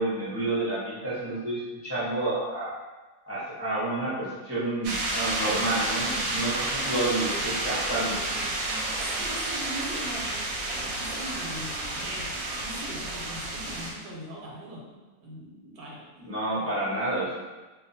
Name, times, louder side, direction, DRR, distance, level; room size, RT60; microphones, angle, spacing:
voice 1, 0.0-2.7 3.3-8.2 16.2-17.3, right 2 dB, 15° right, -11 dB, 0.4 m, -29 dB
sound 1, 4.8-13.9, right 2 dB, 70° right, 0.9 m, -30 dB
voice 2, 8.6-16.3, right 1 dB, 85° right, -3 dB, 1.2 m, -41 dB
2.7 x 2.3 x 2.6 m, 1.2 s
omnidirectional pair, 1.7 m